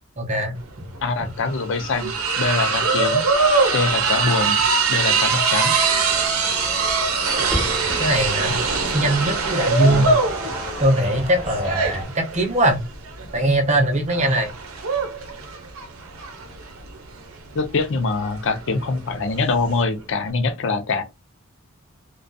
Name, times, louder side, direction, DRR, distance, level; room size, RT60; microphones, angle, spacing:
voice 1, 0.2-0.9 8.0-8.6 8.9-10.1 10.8-12.8 13.3-14.5, right 1 dB, 35° right, 0.6 m, -21 dB
sound 1, 0.6-0.7 0.9-19.8, right 4 dB, 85° right, 0.7 m, -23 dB
voice 2, 1.0-3.3 3.7-4.6 4.9-5.8 9.8-10.1 17.5-21.0, left 3 dB, 60° left, 0.4 m, -24 dB
sound 2, 5.8-12.0, left 1 dB, 5° left, 1.1 m, -34 dB
2.5 x 2.2 x 2.2 m
head